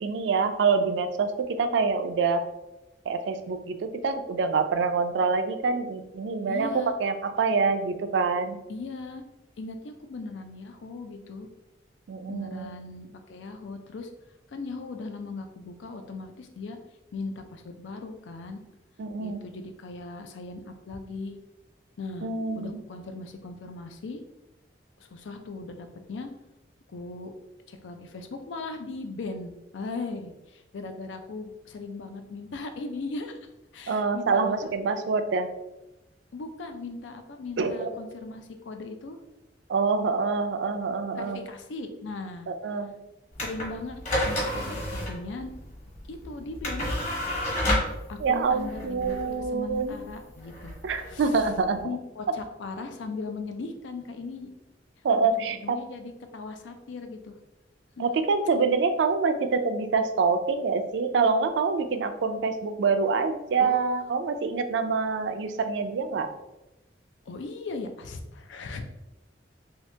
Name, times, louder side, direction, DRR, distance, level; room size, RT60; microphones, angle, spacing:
voice 1, 0.0-2.5 3.1-6.7 7.0-8.6 12.1-12.7 19.0-19.4 22.2-22.8 33.9-35.5 37.6-37.9 39.7-41.4 42.5-42.9 48.2-50.0 50.8-51.8 55.0-55.8 58.0-66.3, right 4 dB, 70° right, 8 dB, 0.3 m, -26 dB
voice 2, 6.5-6.9 8.7-9.2 9.6-11.5 12.3-14.1 14.5-16.8 17.1-18.6 19.2-21.4 22.0-22.3 22.6-24.2 25.0-26.3 26.9-27.3 27.7-34.7 36.3-39.2 40.7-40.8 41.2-42.5 43.4-45.5 46.1-46.9 48.1-50.7 51.1-51.4 51.8-54.5 55.3-57.4 58.0-58.1 63.6-63.8 67.3-68.9, left 3 dB, 90° left, 7 dB, 0.4 m, -38 dB
sound 1, 43.3-51.8, left 1 dB, 40° left, 1.1 m, -31 dB
2.8 x 2.7 x 3.2 m, 0.95 s
head